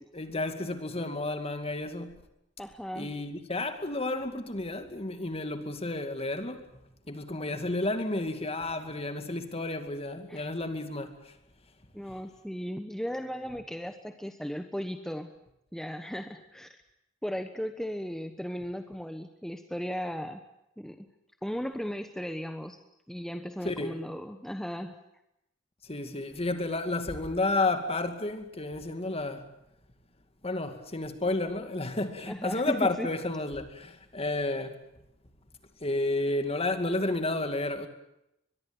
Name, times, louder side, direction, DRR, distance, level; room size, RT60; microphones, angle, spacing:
voice 1, 0.1-2.1 3.0-6.6 7.1-11.3 23.6-24.0 25.8-29.5 30.4-34.8 35.8-37.9, left 2 dB, 30° left, 2.3 m, -31 dB
voice 2, 2.6-3.1 10.3-10.5 11.9-15.3 15.7-16.8 17.2-20.4 20.8-21.1 21.4-22.8 23.1-25.0 32.3-33.1, equal, 5° left, 1.1 m, -36 dB
23.0 x 22.0 x 8.8 m
head